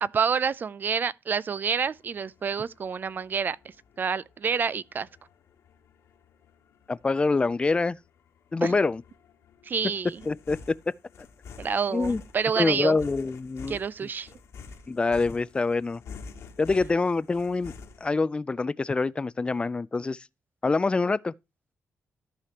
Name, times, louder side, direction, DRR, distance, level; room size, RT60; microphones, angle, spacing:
voice 1, 0.0-3.6 4.0-5.1 8.6-8.7 9.7-10.2 11.6-13.0 13.7-14.3, right 6 dB, 40° right, 0.4 m, -28 dB
sound 1, 1.9-18.1, left 5 dB, 80° left, 1.8 m, -48 dB
voice 2, 6.9-8.0 8.5-9.0 10.3-10.6 11.9-12.2 12.6-13.8 14.9-16.0 16.6-17.7 18.0-20.2 20.6-21.3, left 3 dB, 20° left, 0.4 m, -25 dB
14.0 x 4.9 x 2.9 m
cardioid pair, 110°, 5 cm